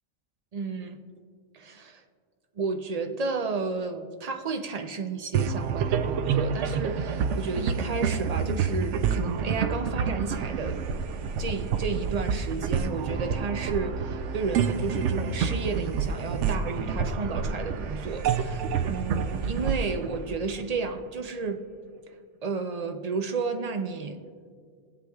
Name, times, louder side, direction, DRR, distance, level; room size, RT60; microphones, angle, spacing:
voice 1, 0.5-1.0 1.5-2.0 2.6-10.8 11.4-21.6 22.4-24.2, right 4 dB, 45° right, 6 dB, 0.5 m, -32 dB
sound 1, 5.3-21.0, right 6 dB, 80° right, 0.9 m, -28 dB
23.0 x 7.7 x 2.3 m, 2.1 s
omnidirectional pair, 1.2 m